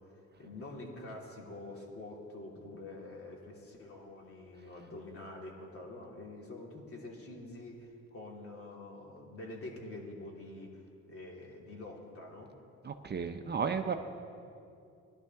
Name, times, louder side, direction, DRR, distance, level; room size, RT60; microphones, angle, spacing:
voice 1, 0.0-10.8 11.1-12.5, left 2 dB, 45° left, -2 dB, 2.8 m, -46 dB
voice 2, 12.8-13.9, right 6 dB, 35° right, 7 dB, 0.6 m, -33 dB
17.5 x 11.5 x 3.6 m, 2.5 s
cardioid pair, 90°, 30 cm